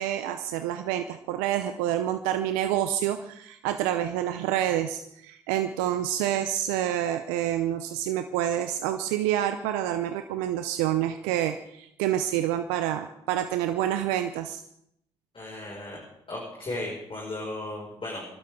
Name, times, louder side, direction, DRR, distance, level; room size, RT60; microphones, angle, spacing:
voice 1, 0.0-14.6, right 11 dB, 85° right, 8 dB, 0.6 m, -28 dB
voice 2, 15.3-16.0 16.3-18.3, left 1 dB, 40° left, -4 dB, 5.7 m, -35 dB
26.0 x 12.0 x 3.7 m, 0.74 s
hypercardioid pair, 45°, 14 cm